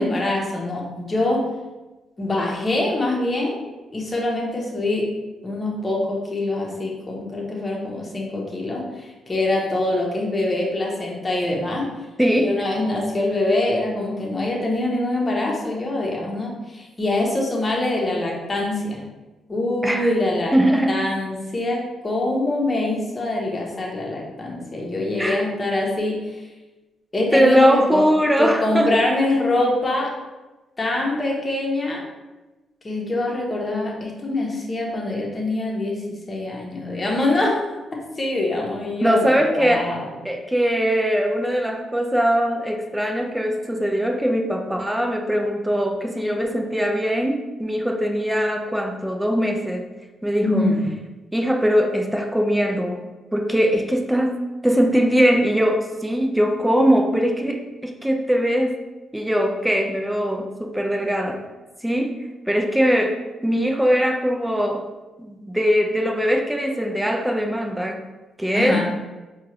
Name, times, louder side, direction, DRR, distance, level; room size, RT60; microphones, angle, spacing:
voice 1, 0.0-1.4 2.2-3.6 3.9-5.1 5.4-11.9 12.4-19.0 19.5-20.5 20.9-26.2 27.1-28.0 28.4-30.1 30.8-32.0 32.8-37.6 38.2-40.1 50.4-50.8 68.5-68.8, left 2 dB, 30° left, -2 dB, 1.0 m, -24 dB
voice 2, 12.2-12.5 19.8-20.1 20.5-21.0 25.2-25.5 27.3-29.0 39.0-39.9 40.2-49.9 50.2-50.7 51.3-53.0 53.3-54.4 54.6-58.8 59.1-61.4 61.8-63.2 63.4-64.8 65.2-68.0 68.4-68.8, equal, 5° right, 2 dB, 0.5 m, -21 dB
4.4 x 2.4 x 3.0 m, 1.2 s
supercardioid pair, 60°, 0 cm